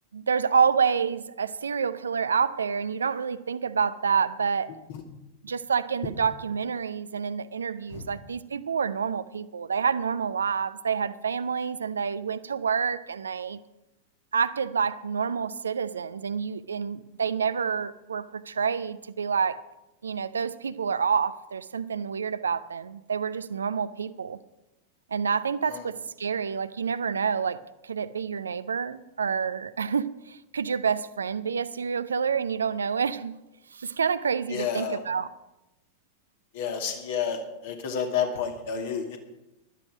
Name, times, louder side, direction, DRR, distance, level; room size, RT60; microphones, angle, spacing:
voice 1, 0.1-4.7 5.4-13.6 14.3-19.6 20.0-24.4 25.1-33.3 33.7-35.3, right 6 dB, 70° right, 14 dB, 0.6 m, -28 dB
voice 2, 34.5-35.0 36.5-39.2, left 7 dB, 55° left, 3 dB, 2.4 m, -30 dB
16.0 x 12.5 x 5.0 m, 0.96 s
figure-of-eight pair, 90°, 0 cm